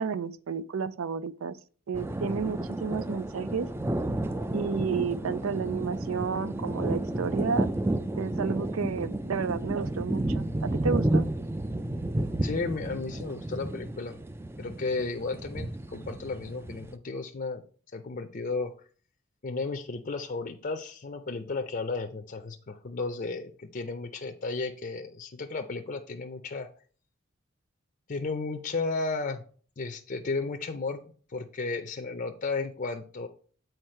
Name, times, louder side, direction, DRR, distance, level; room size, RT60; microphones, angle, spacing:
voice 1, 0.0-1.6 1.9-3.7 4.5-7.7 8.2-11.2, right 5 dB, 90° right, 0.5 m, -31 dB
sound 1, 1.9-16.9, right 1 dB, 10° right, 0.3 m, -31 dB
voice 2, 12.4-14.2 14.6-17.6 17.9-18.7 19.4-26.7 28.1-29.4 29.8-31.0 31.3-33.3, left 3 dB, 40° left, 0.5 m, -33 dB
7.9 x 4.5 x 4.3 m
head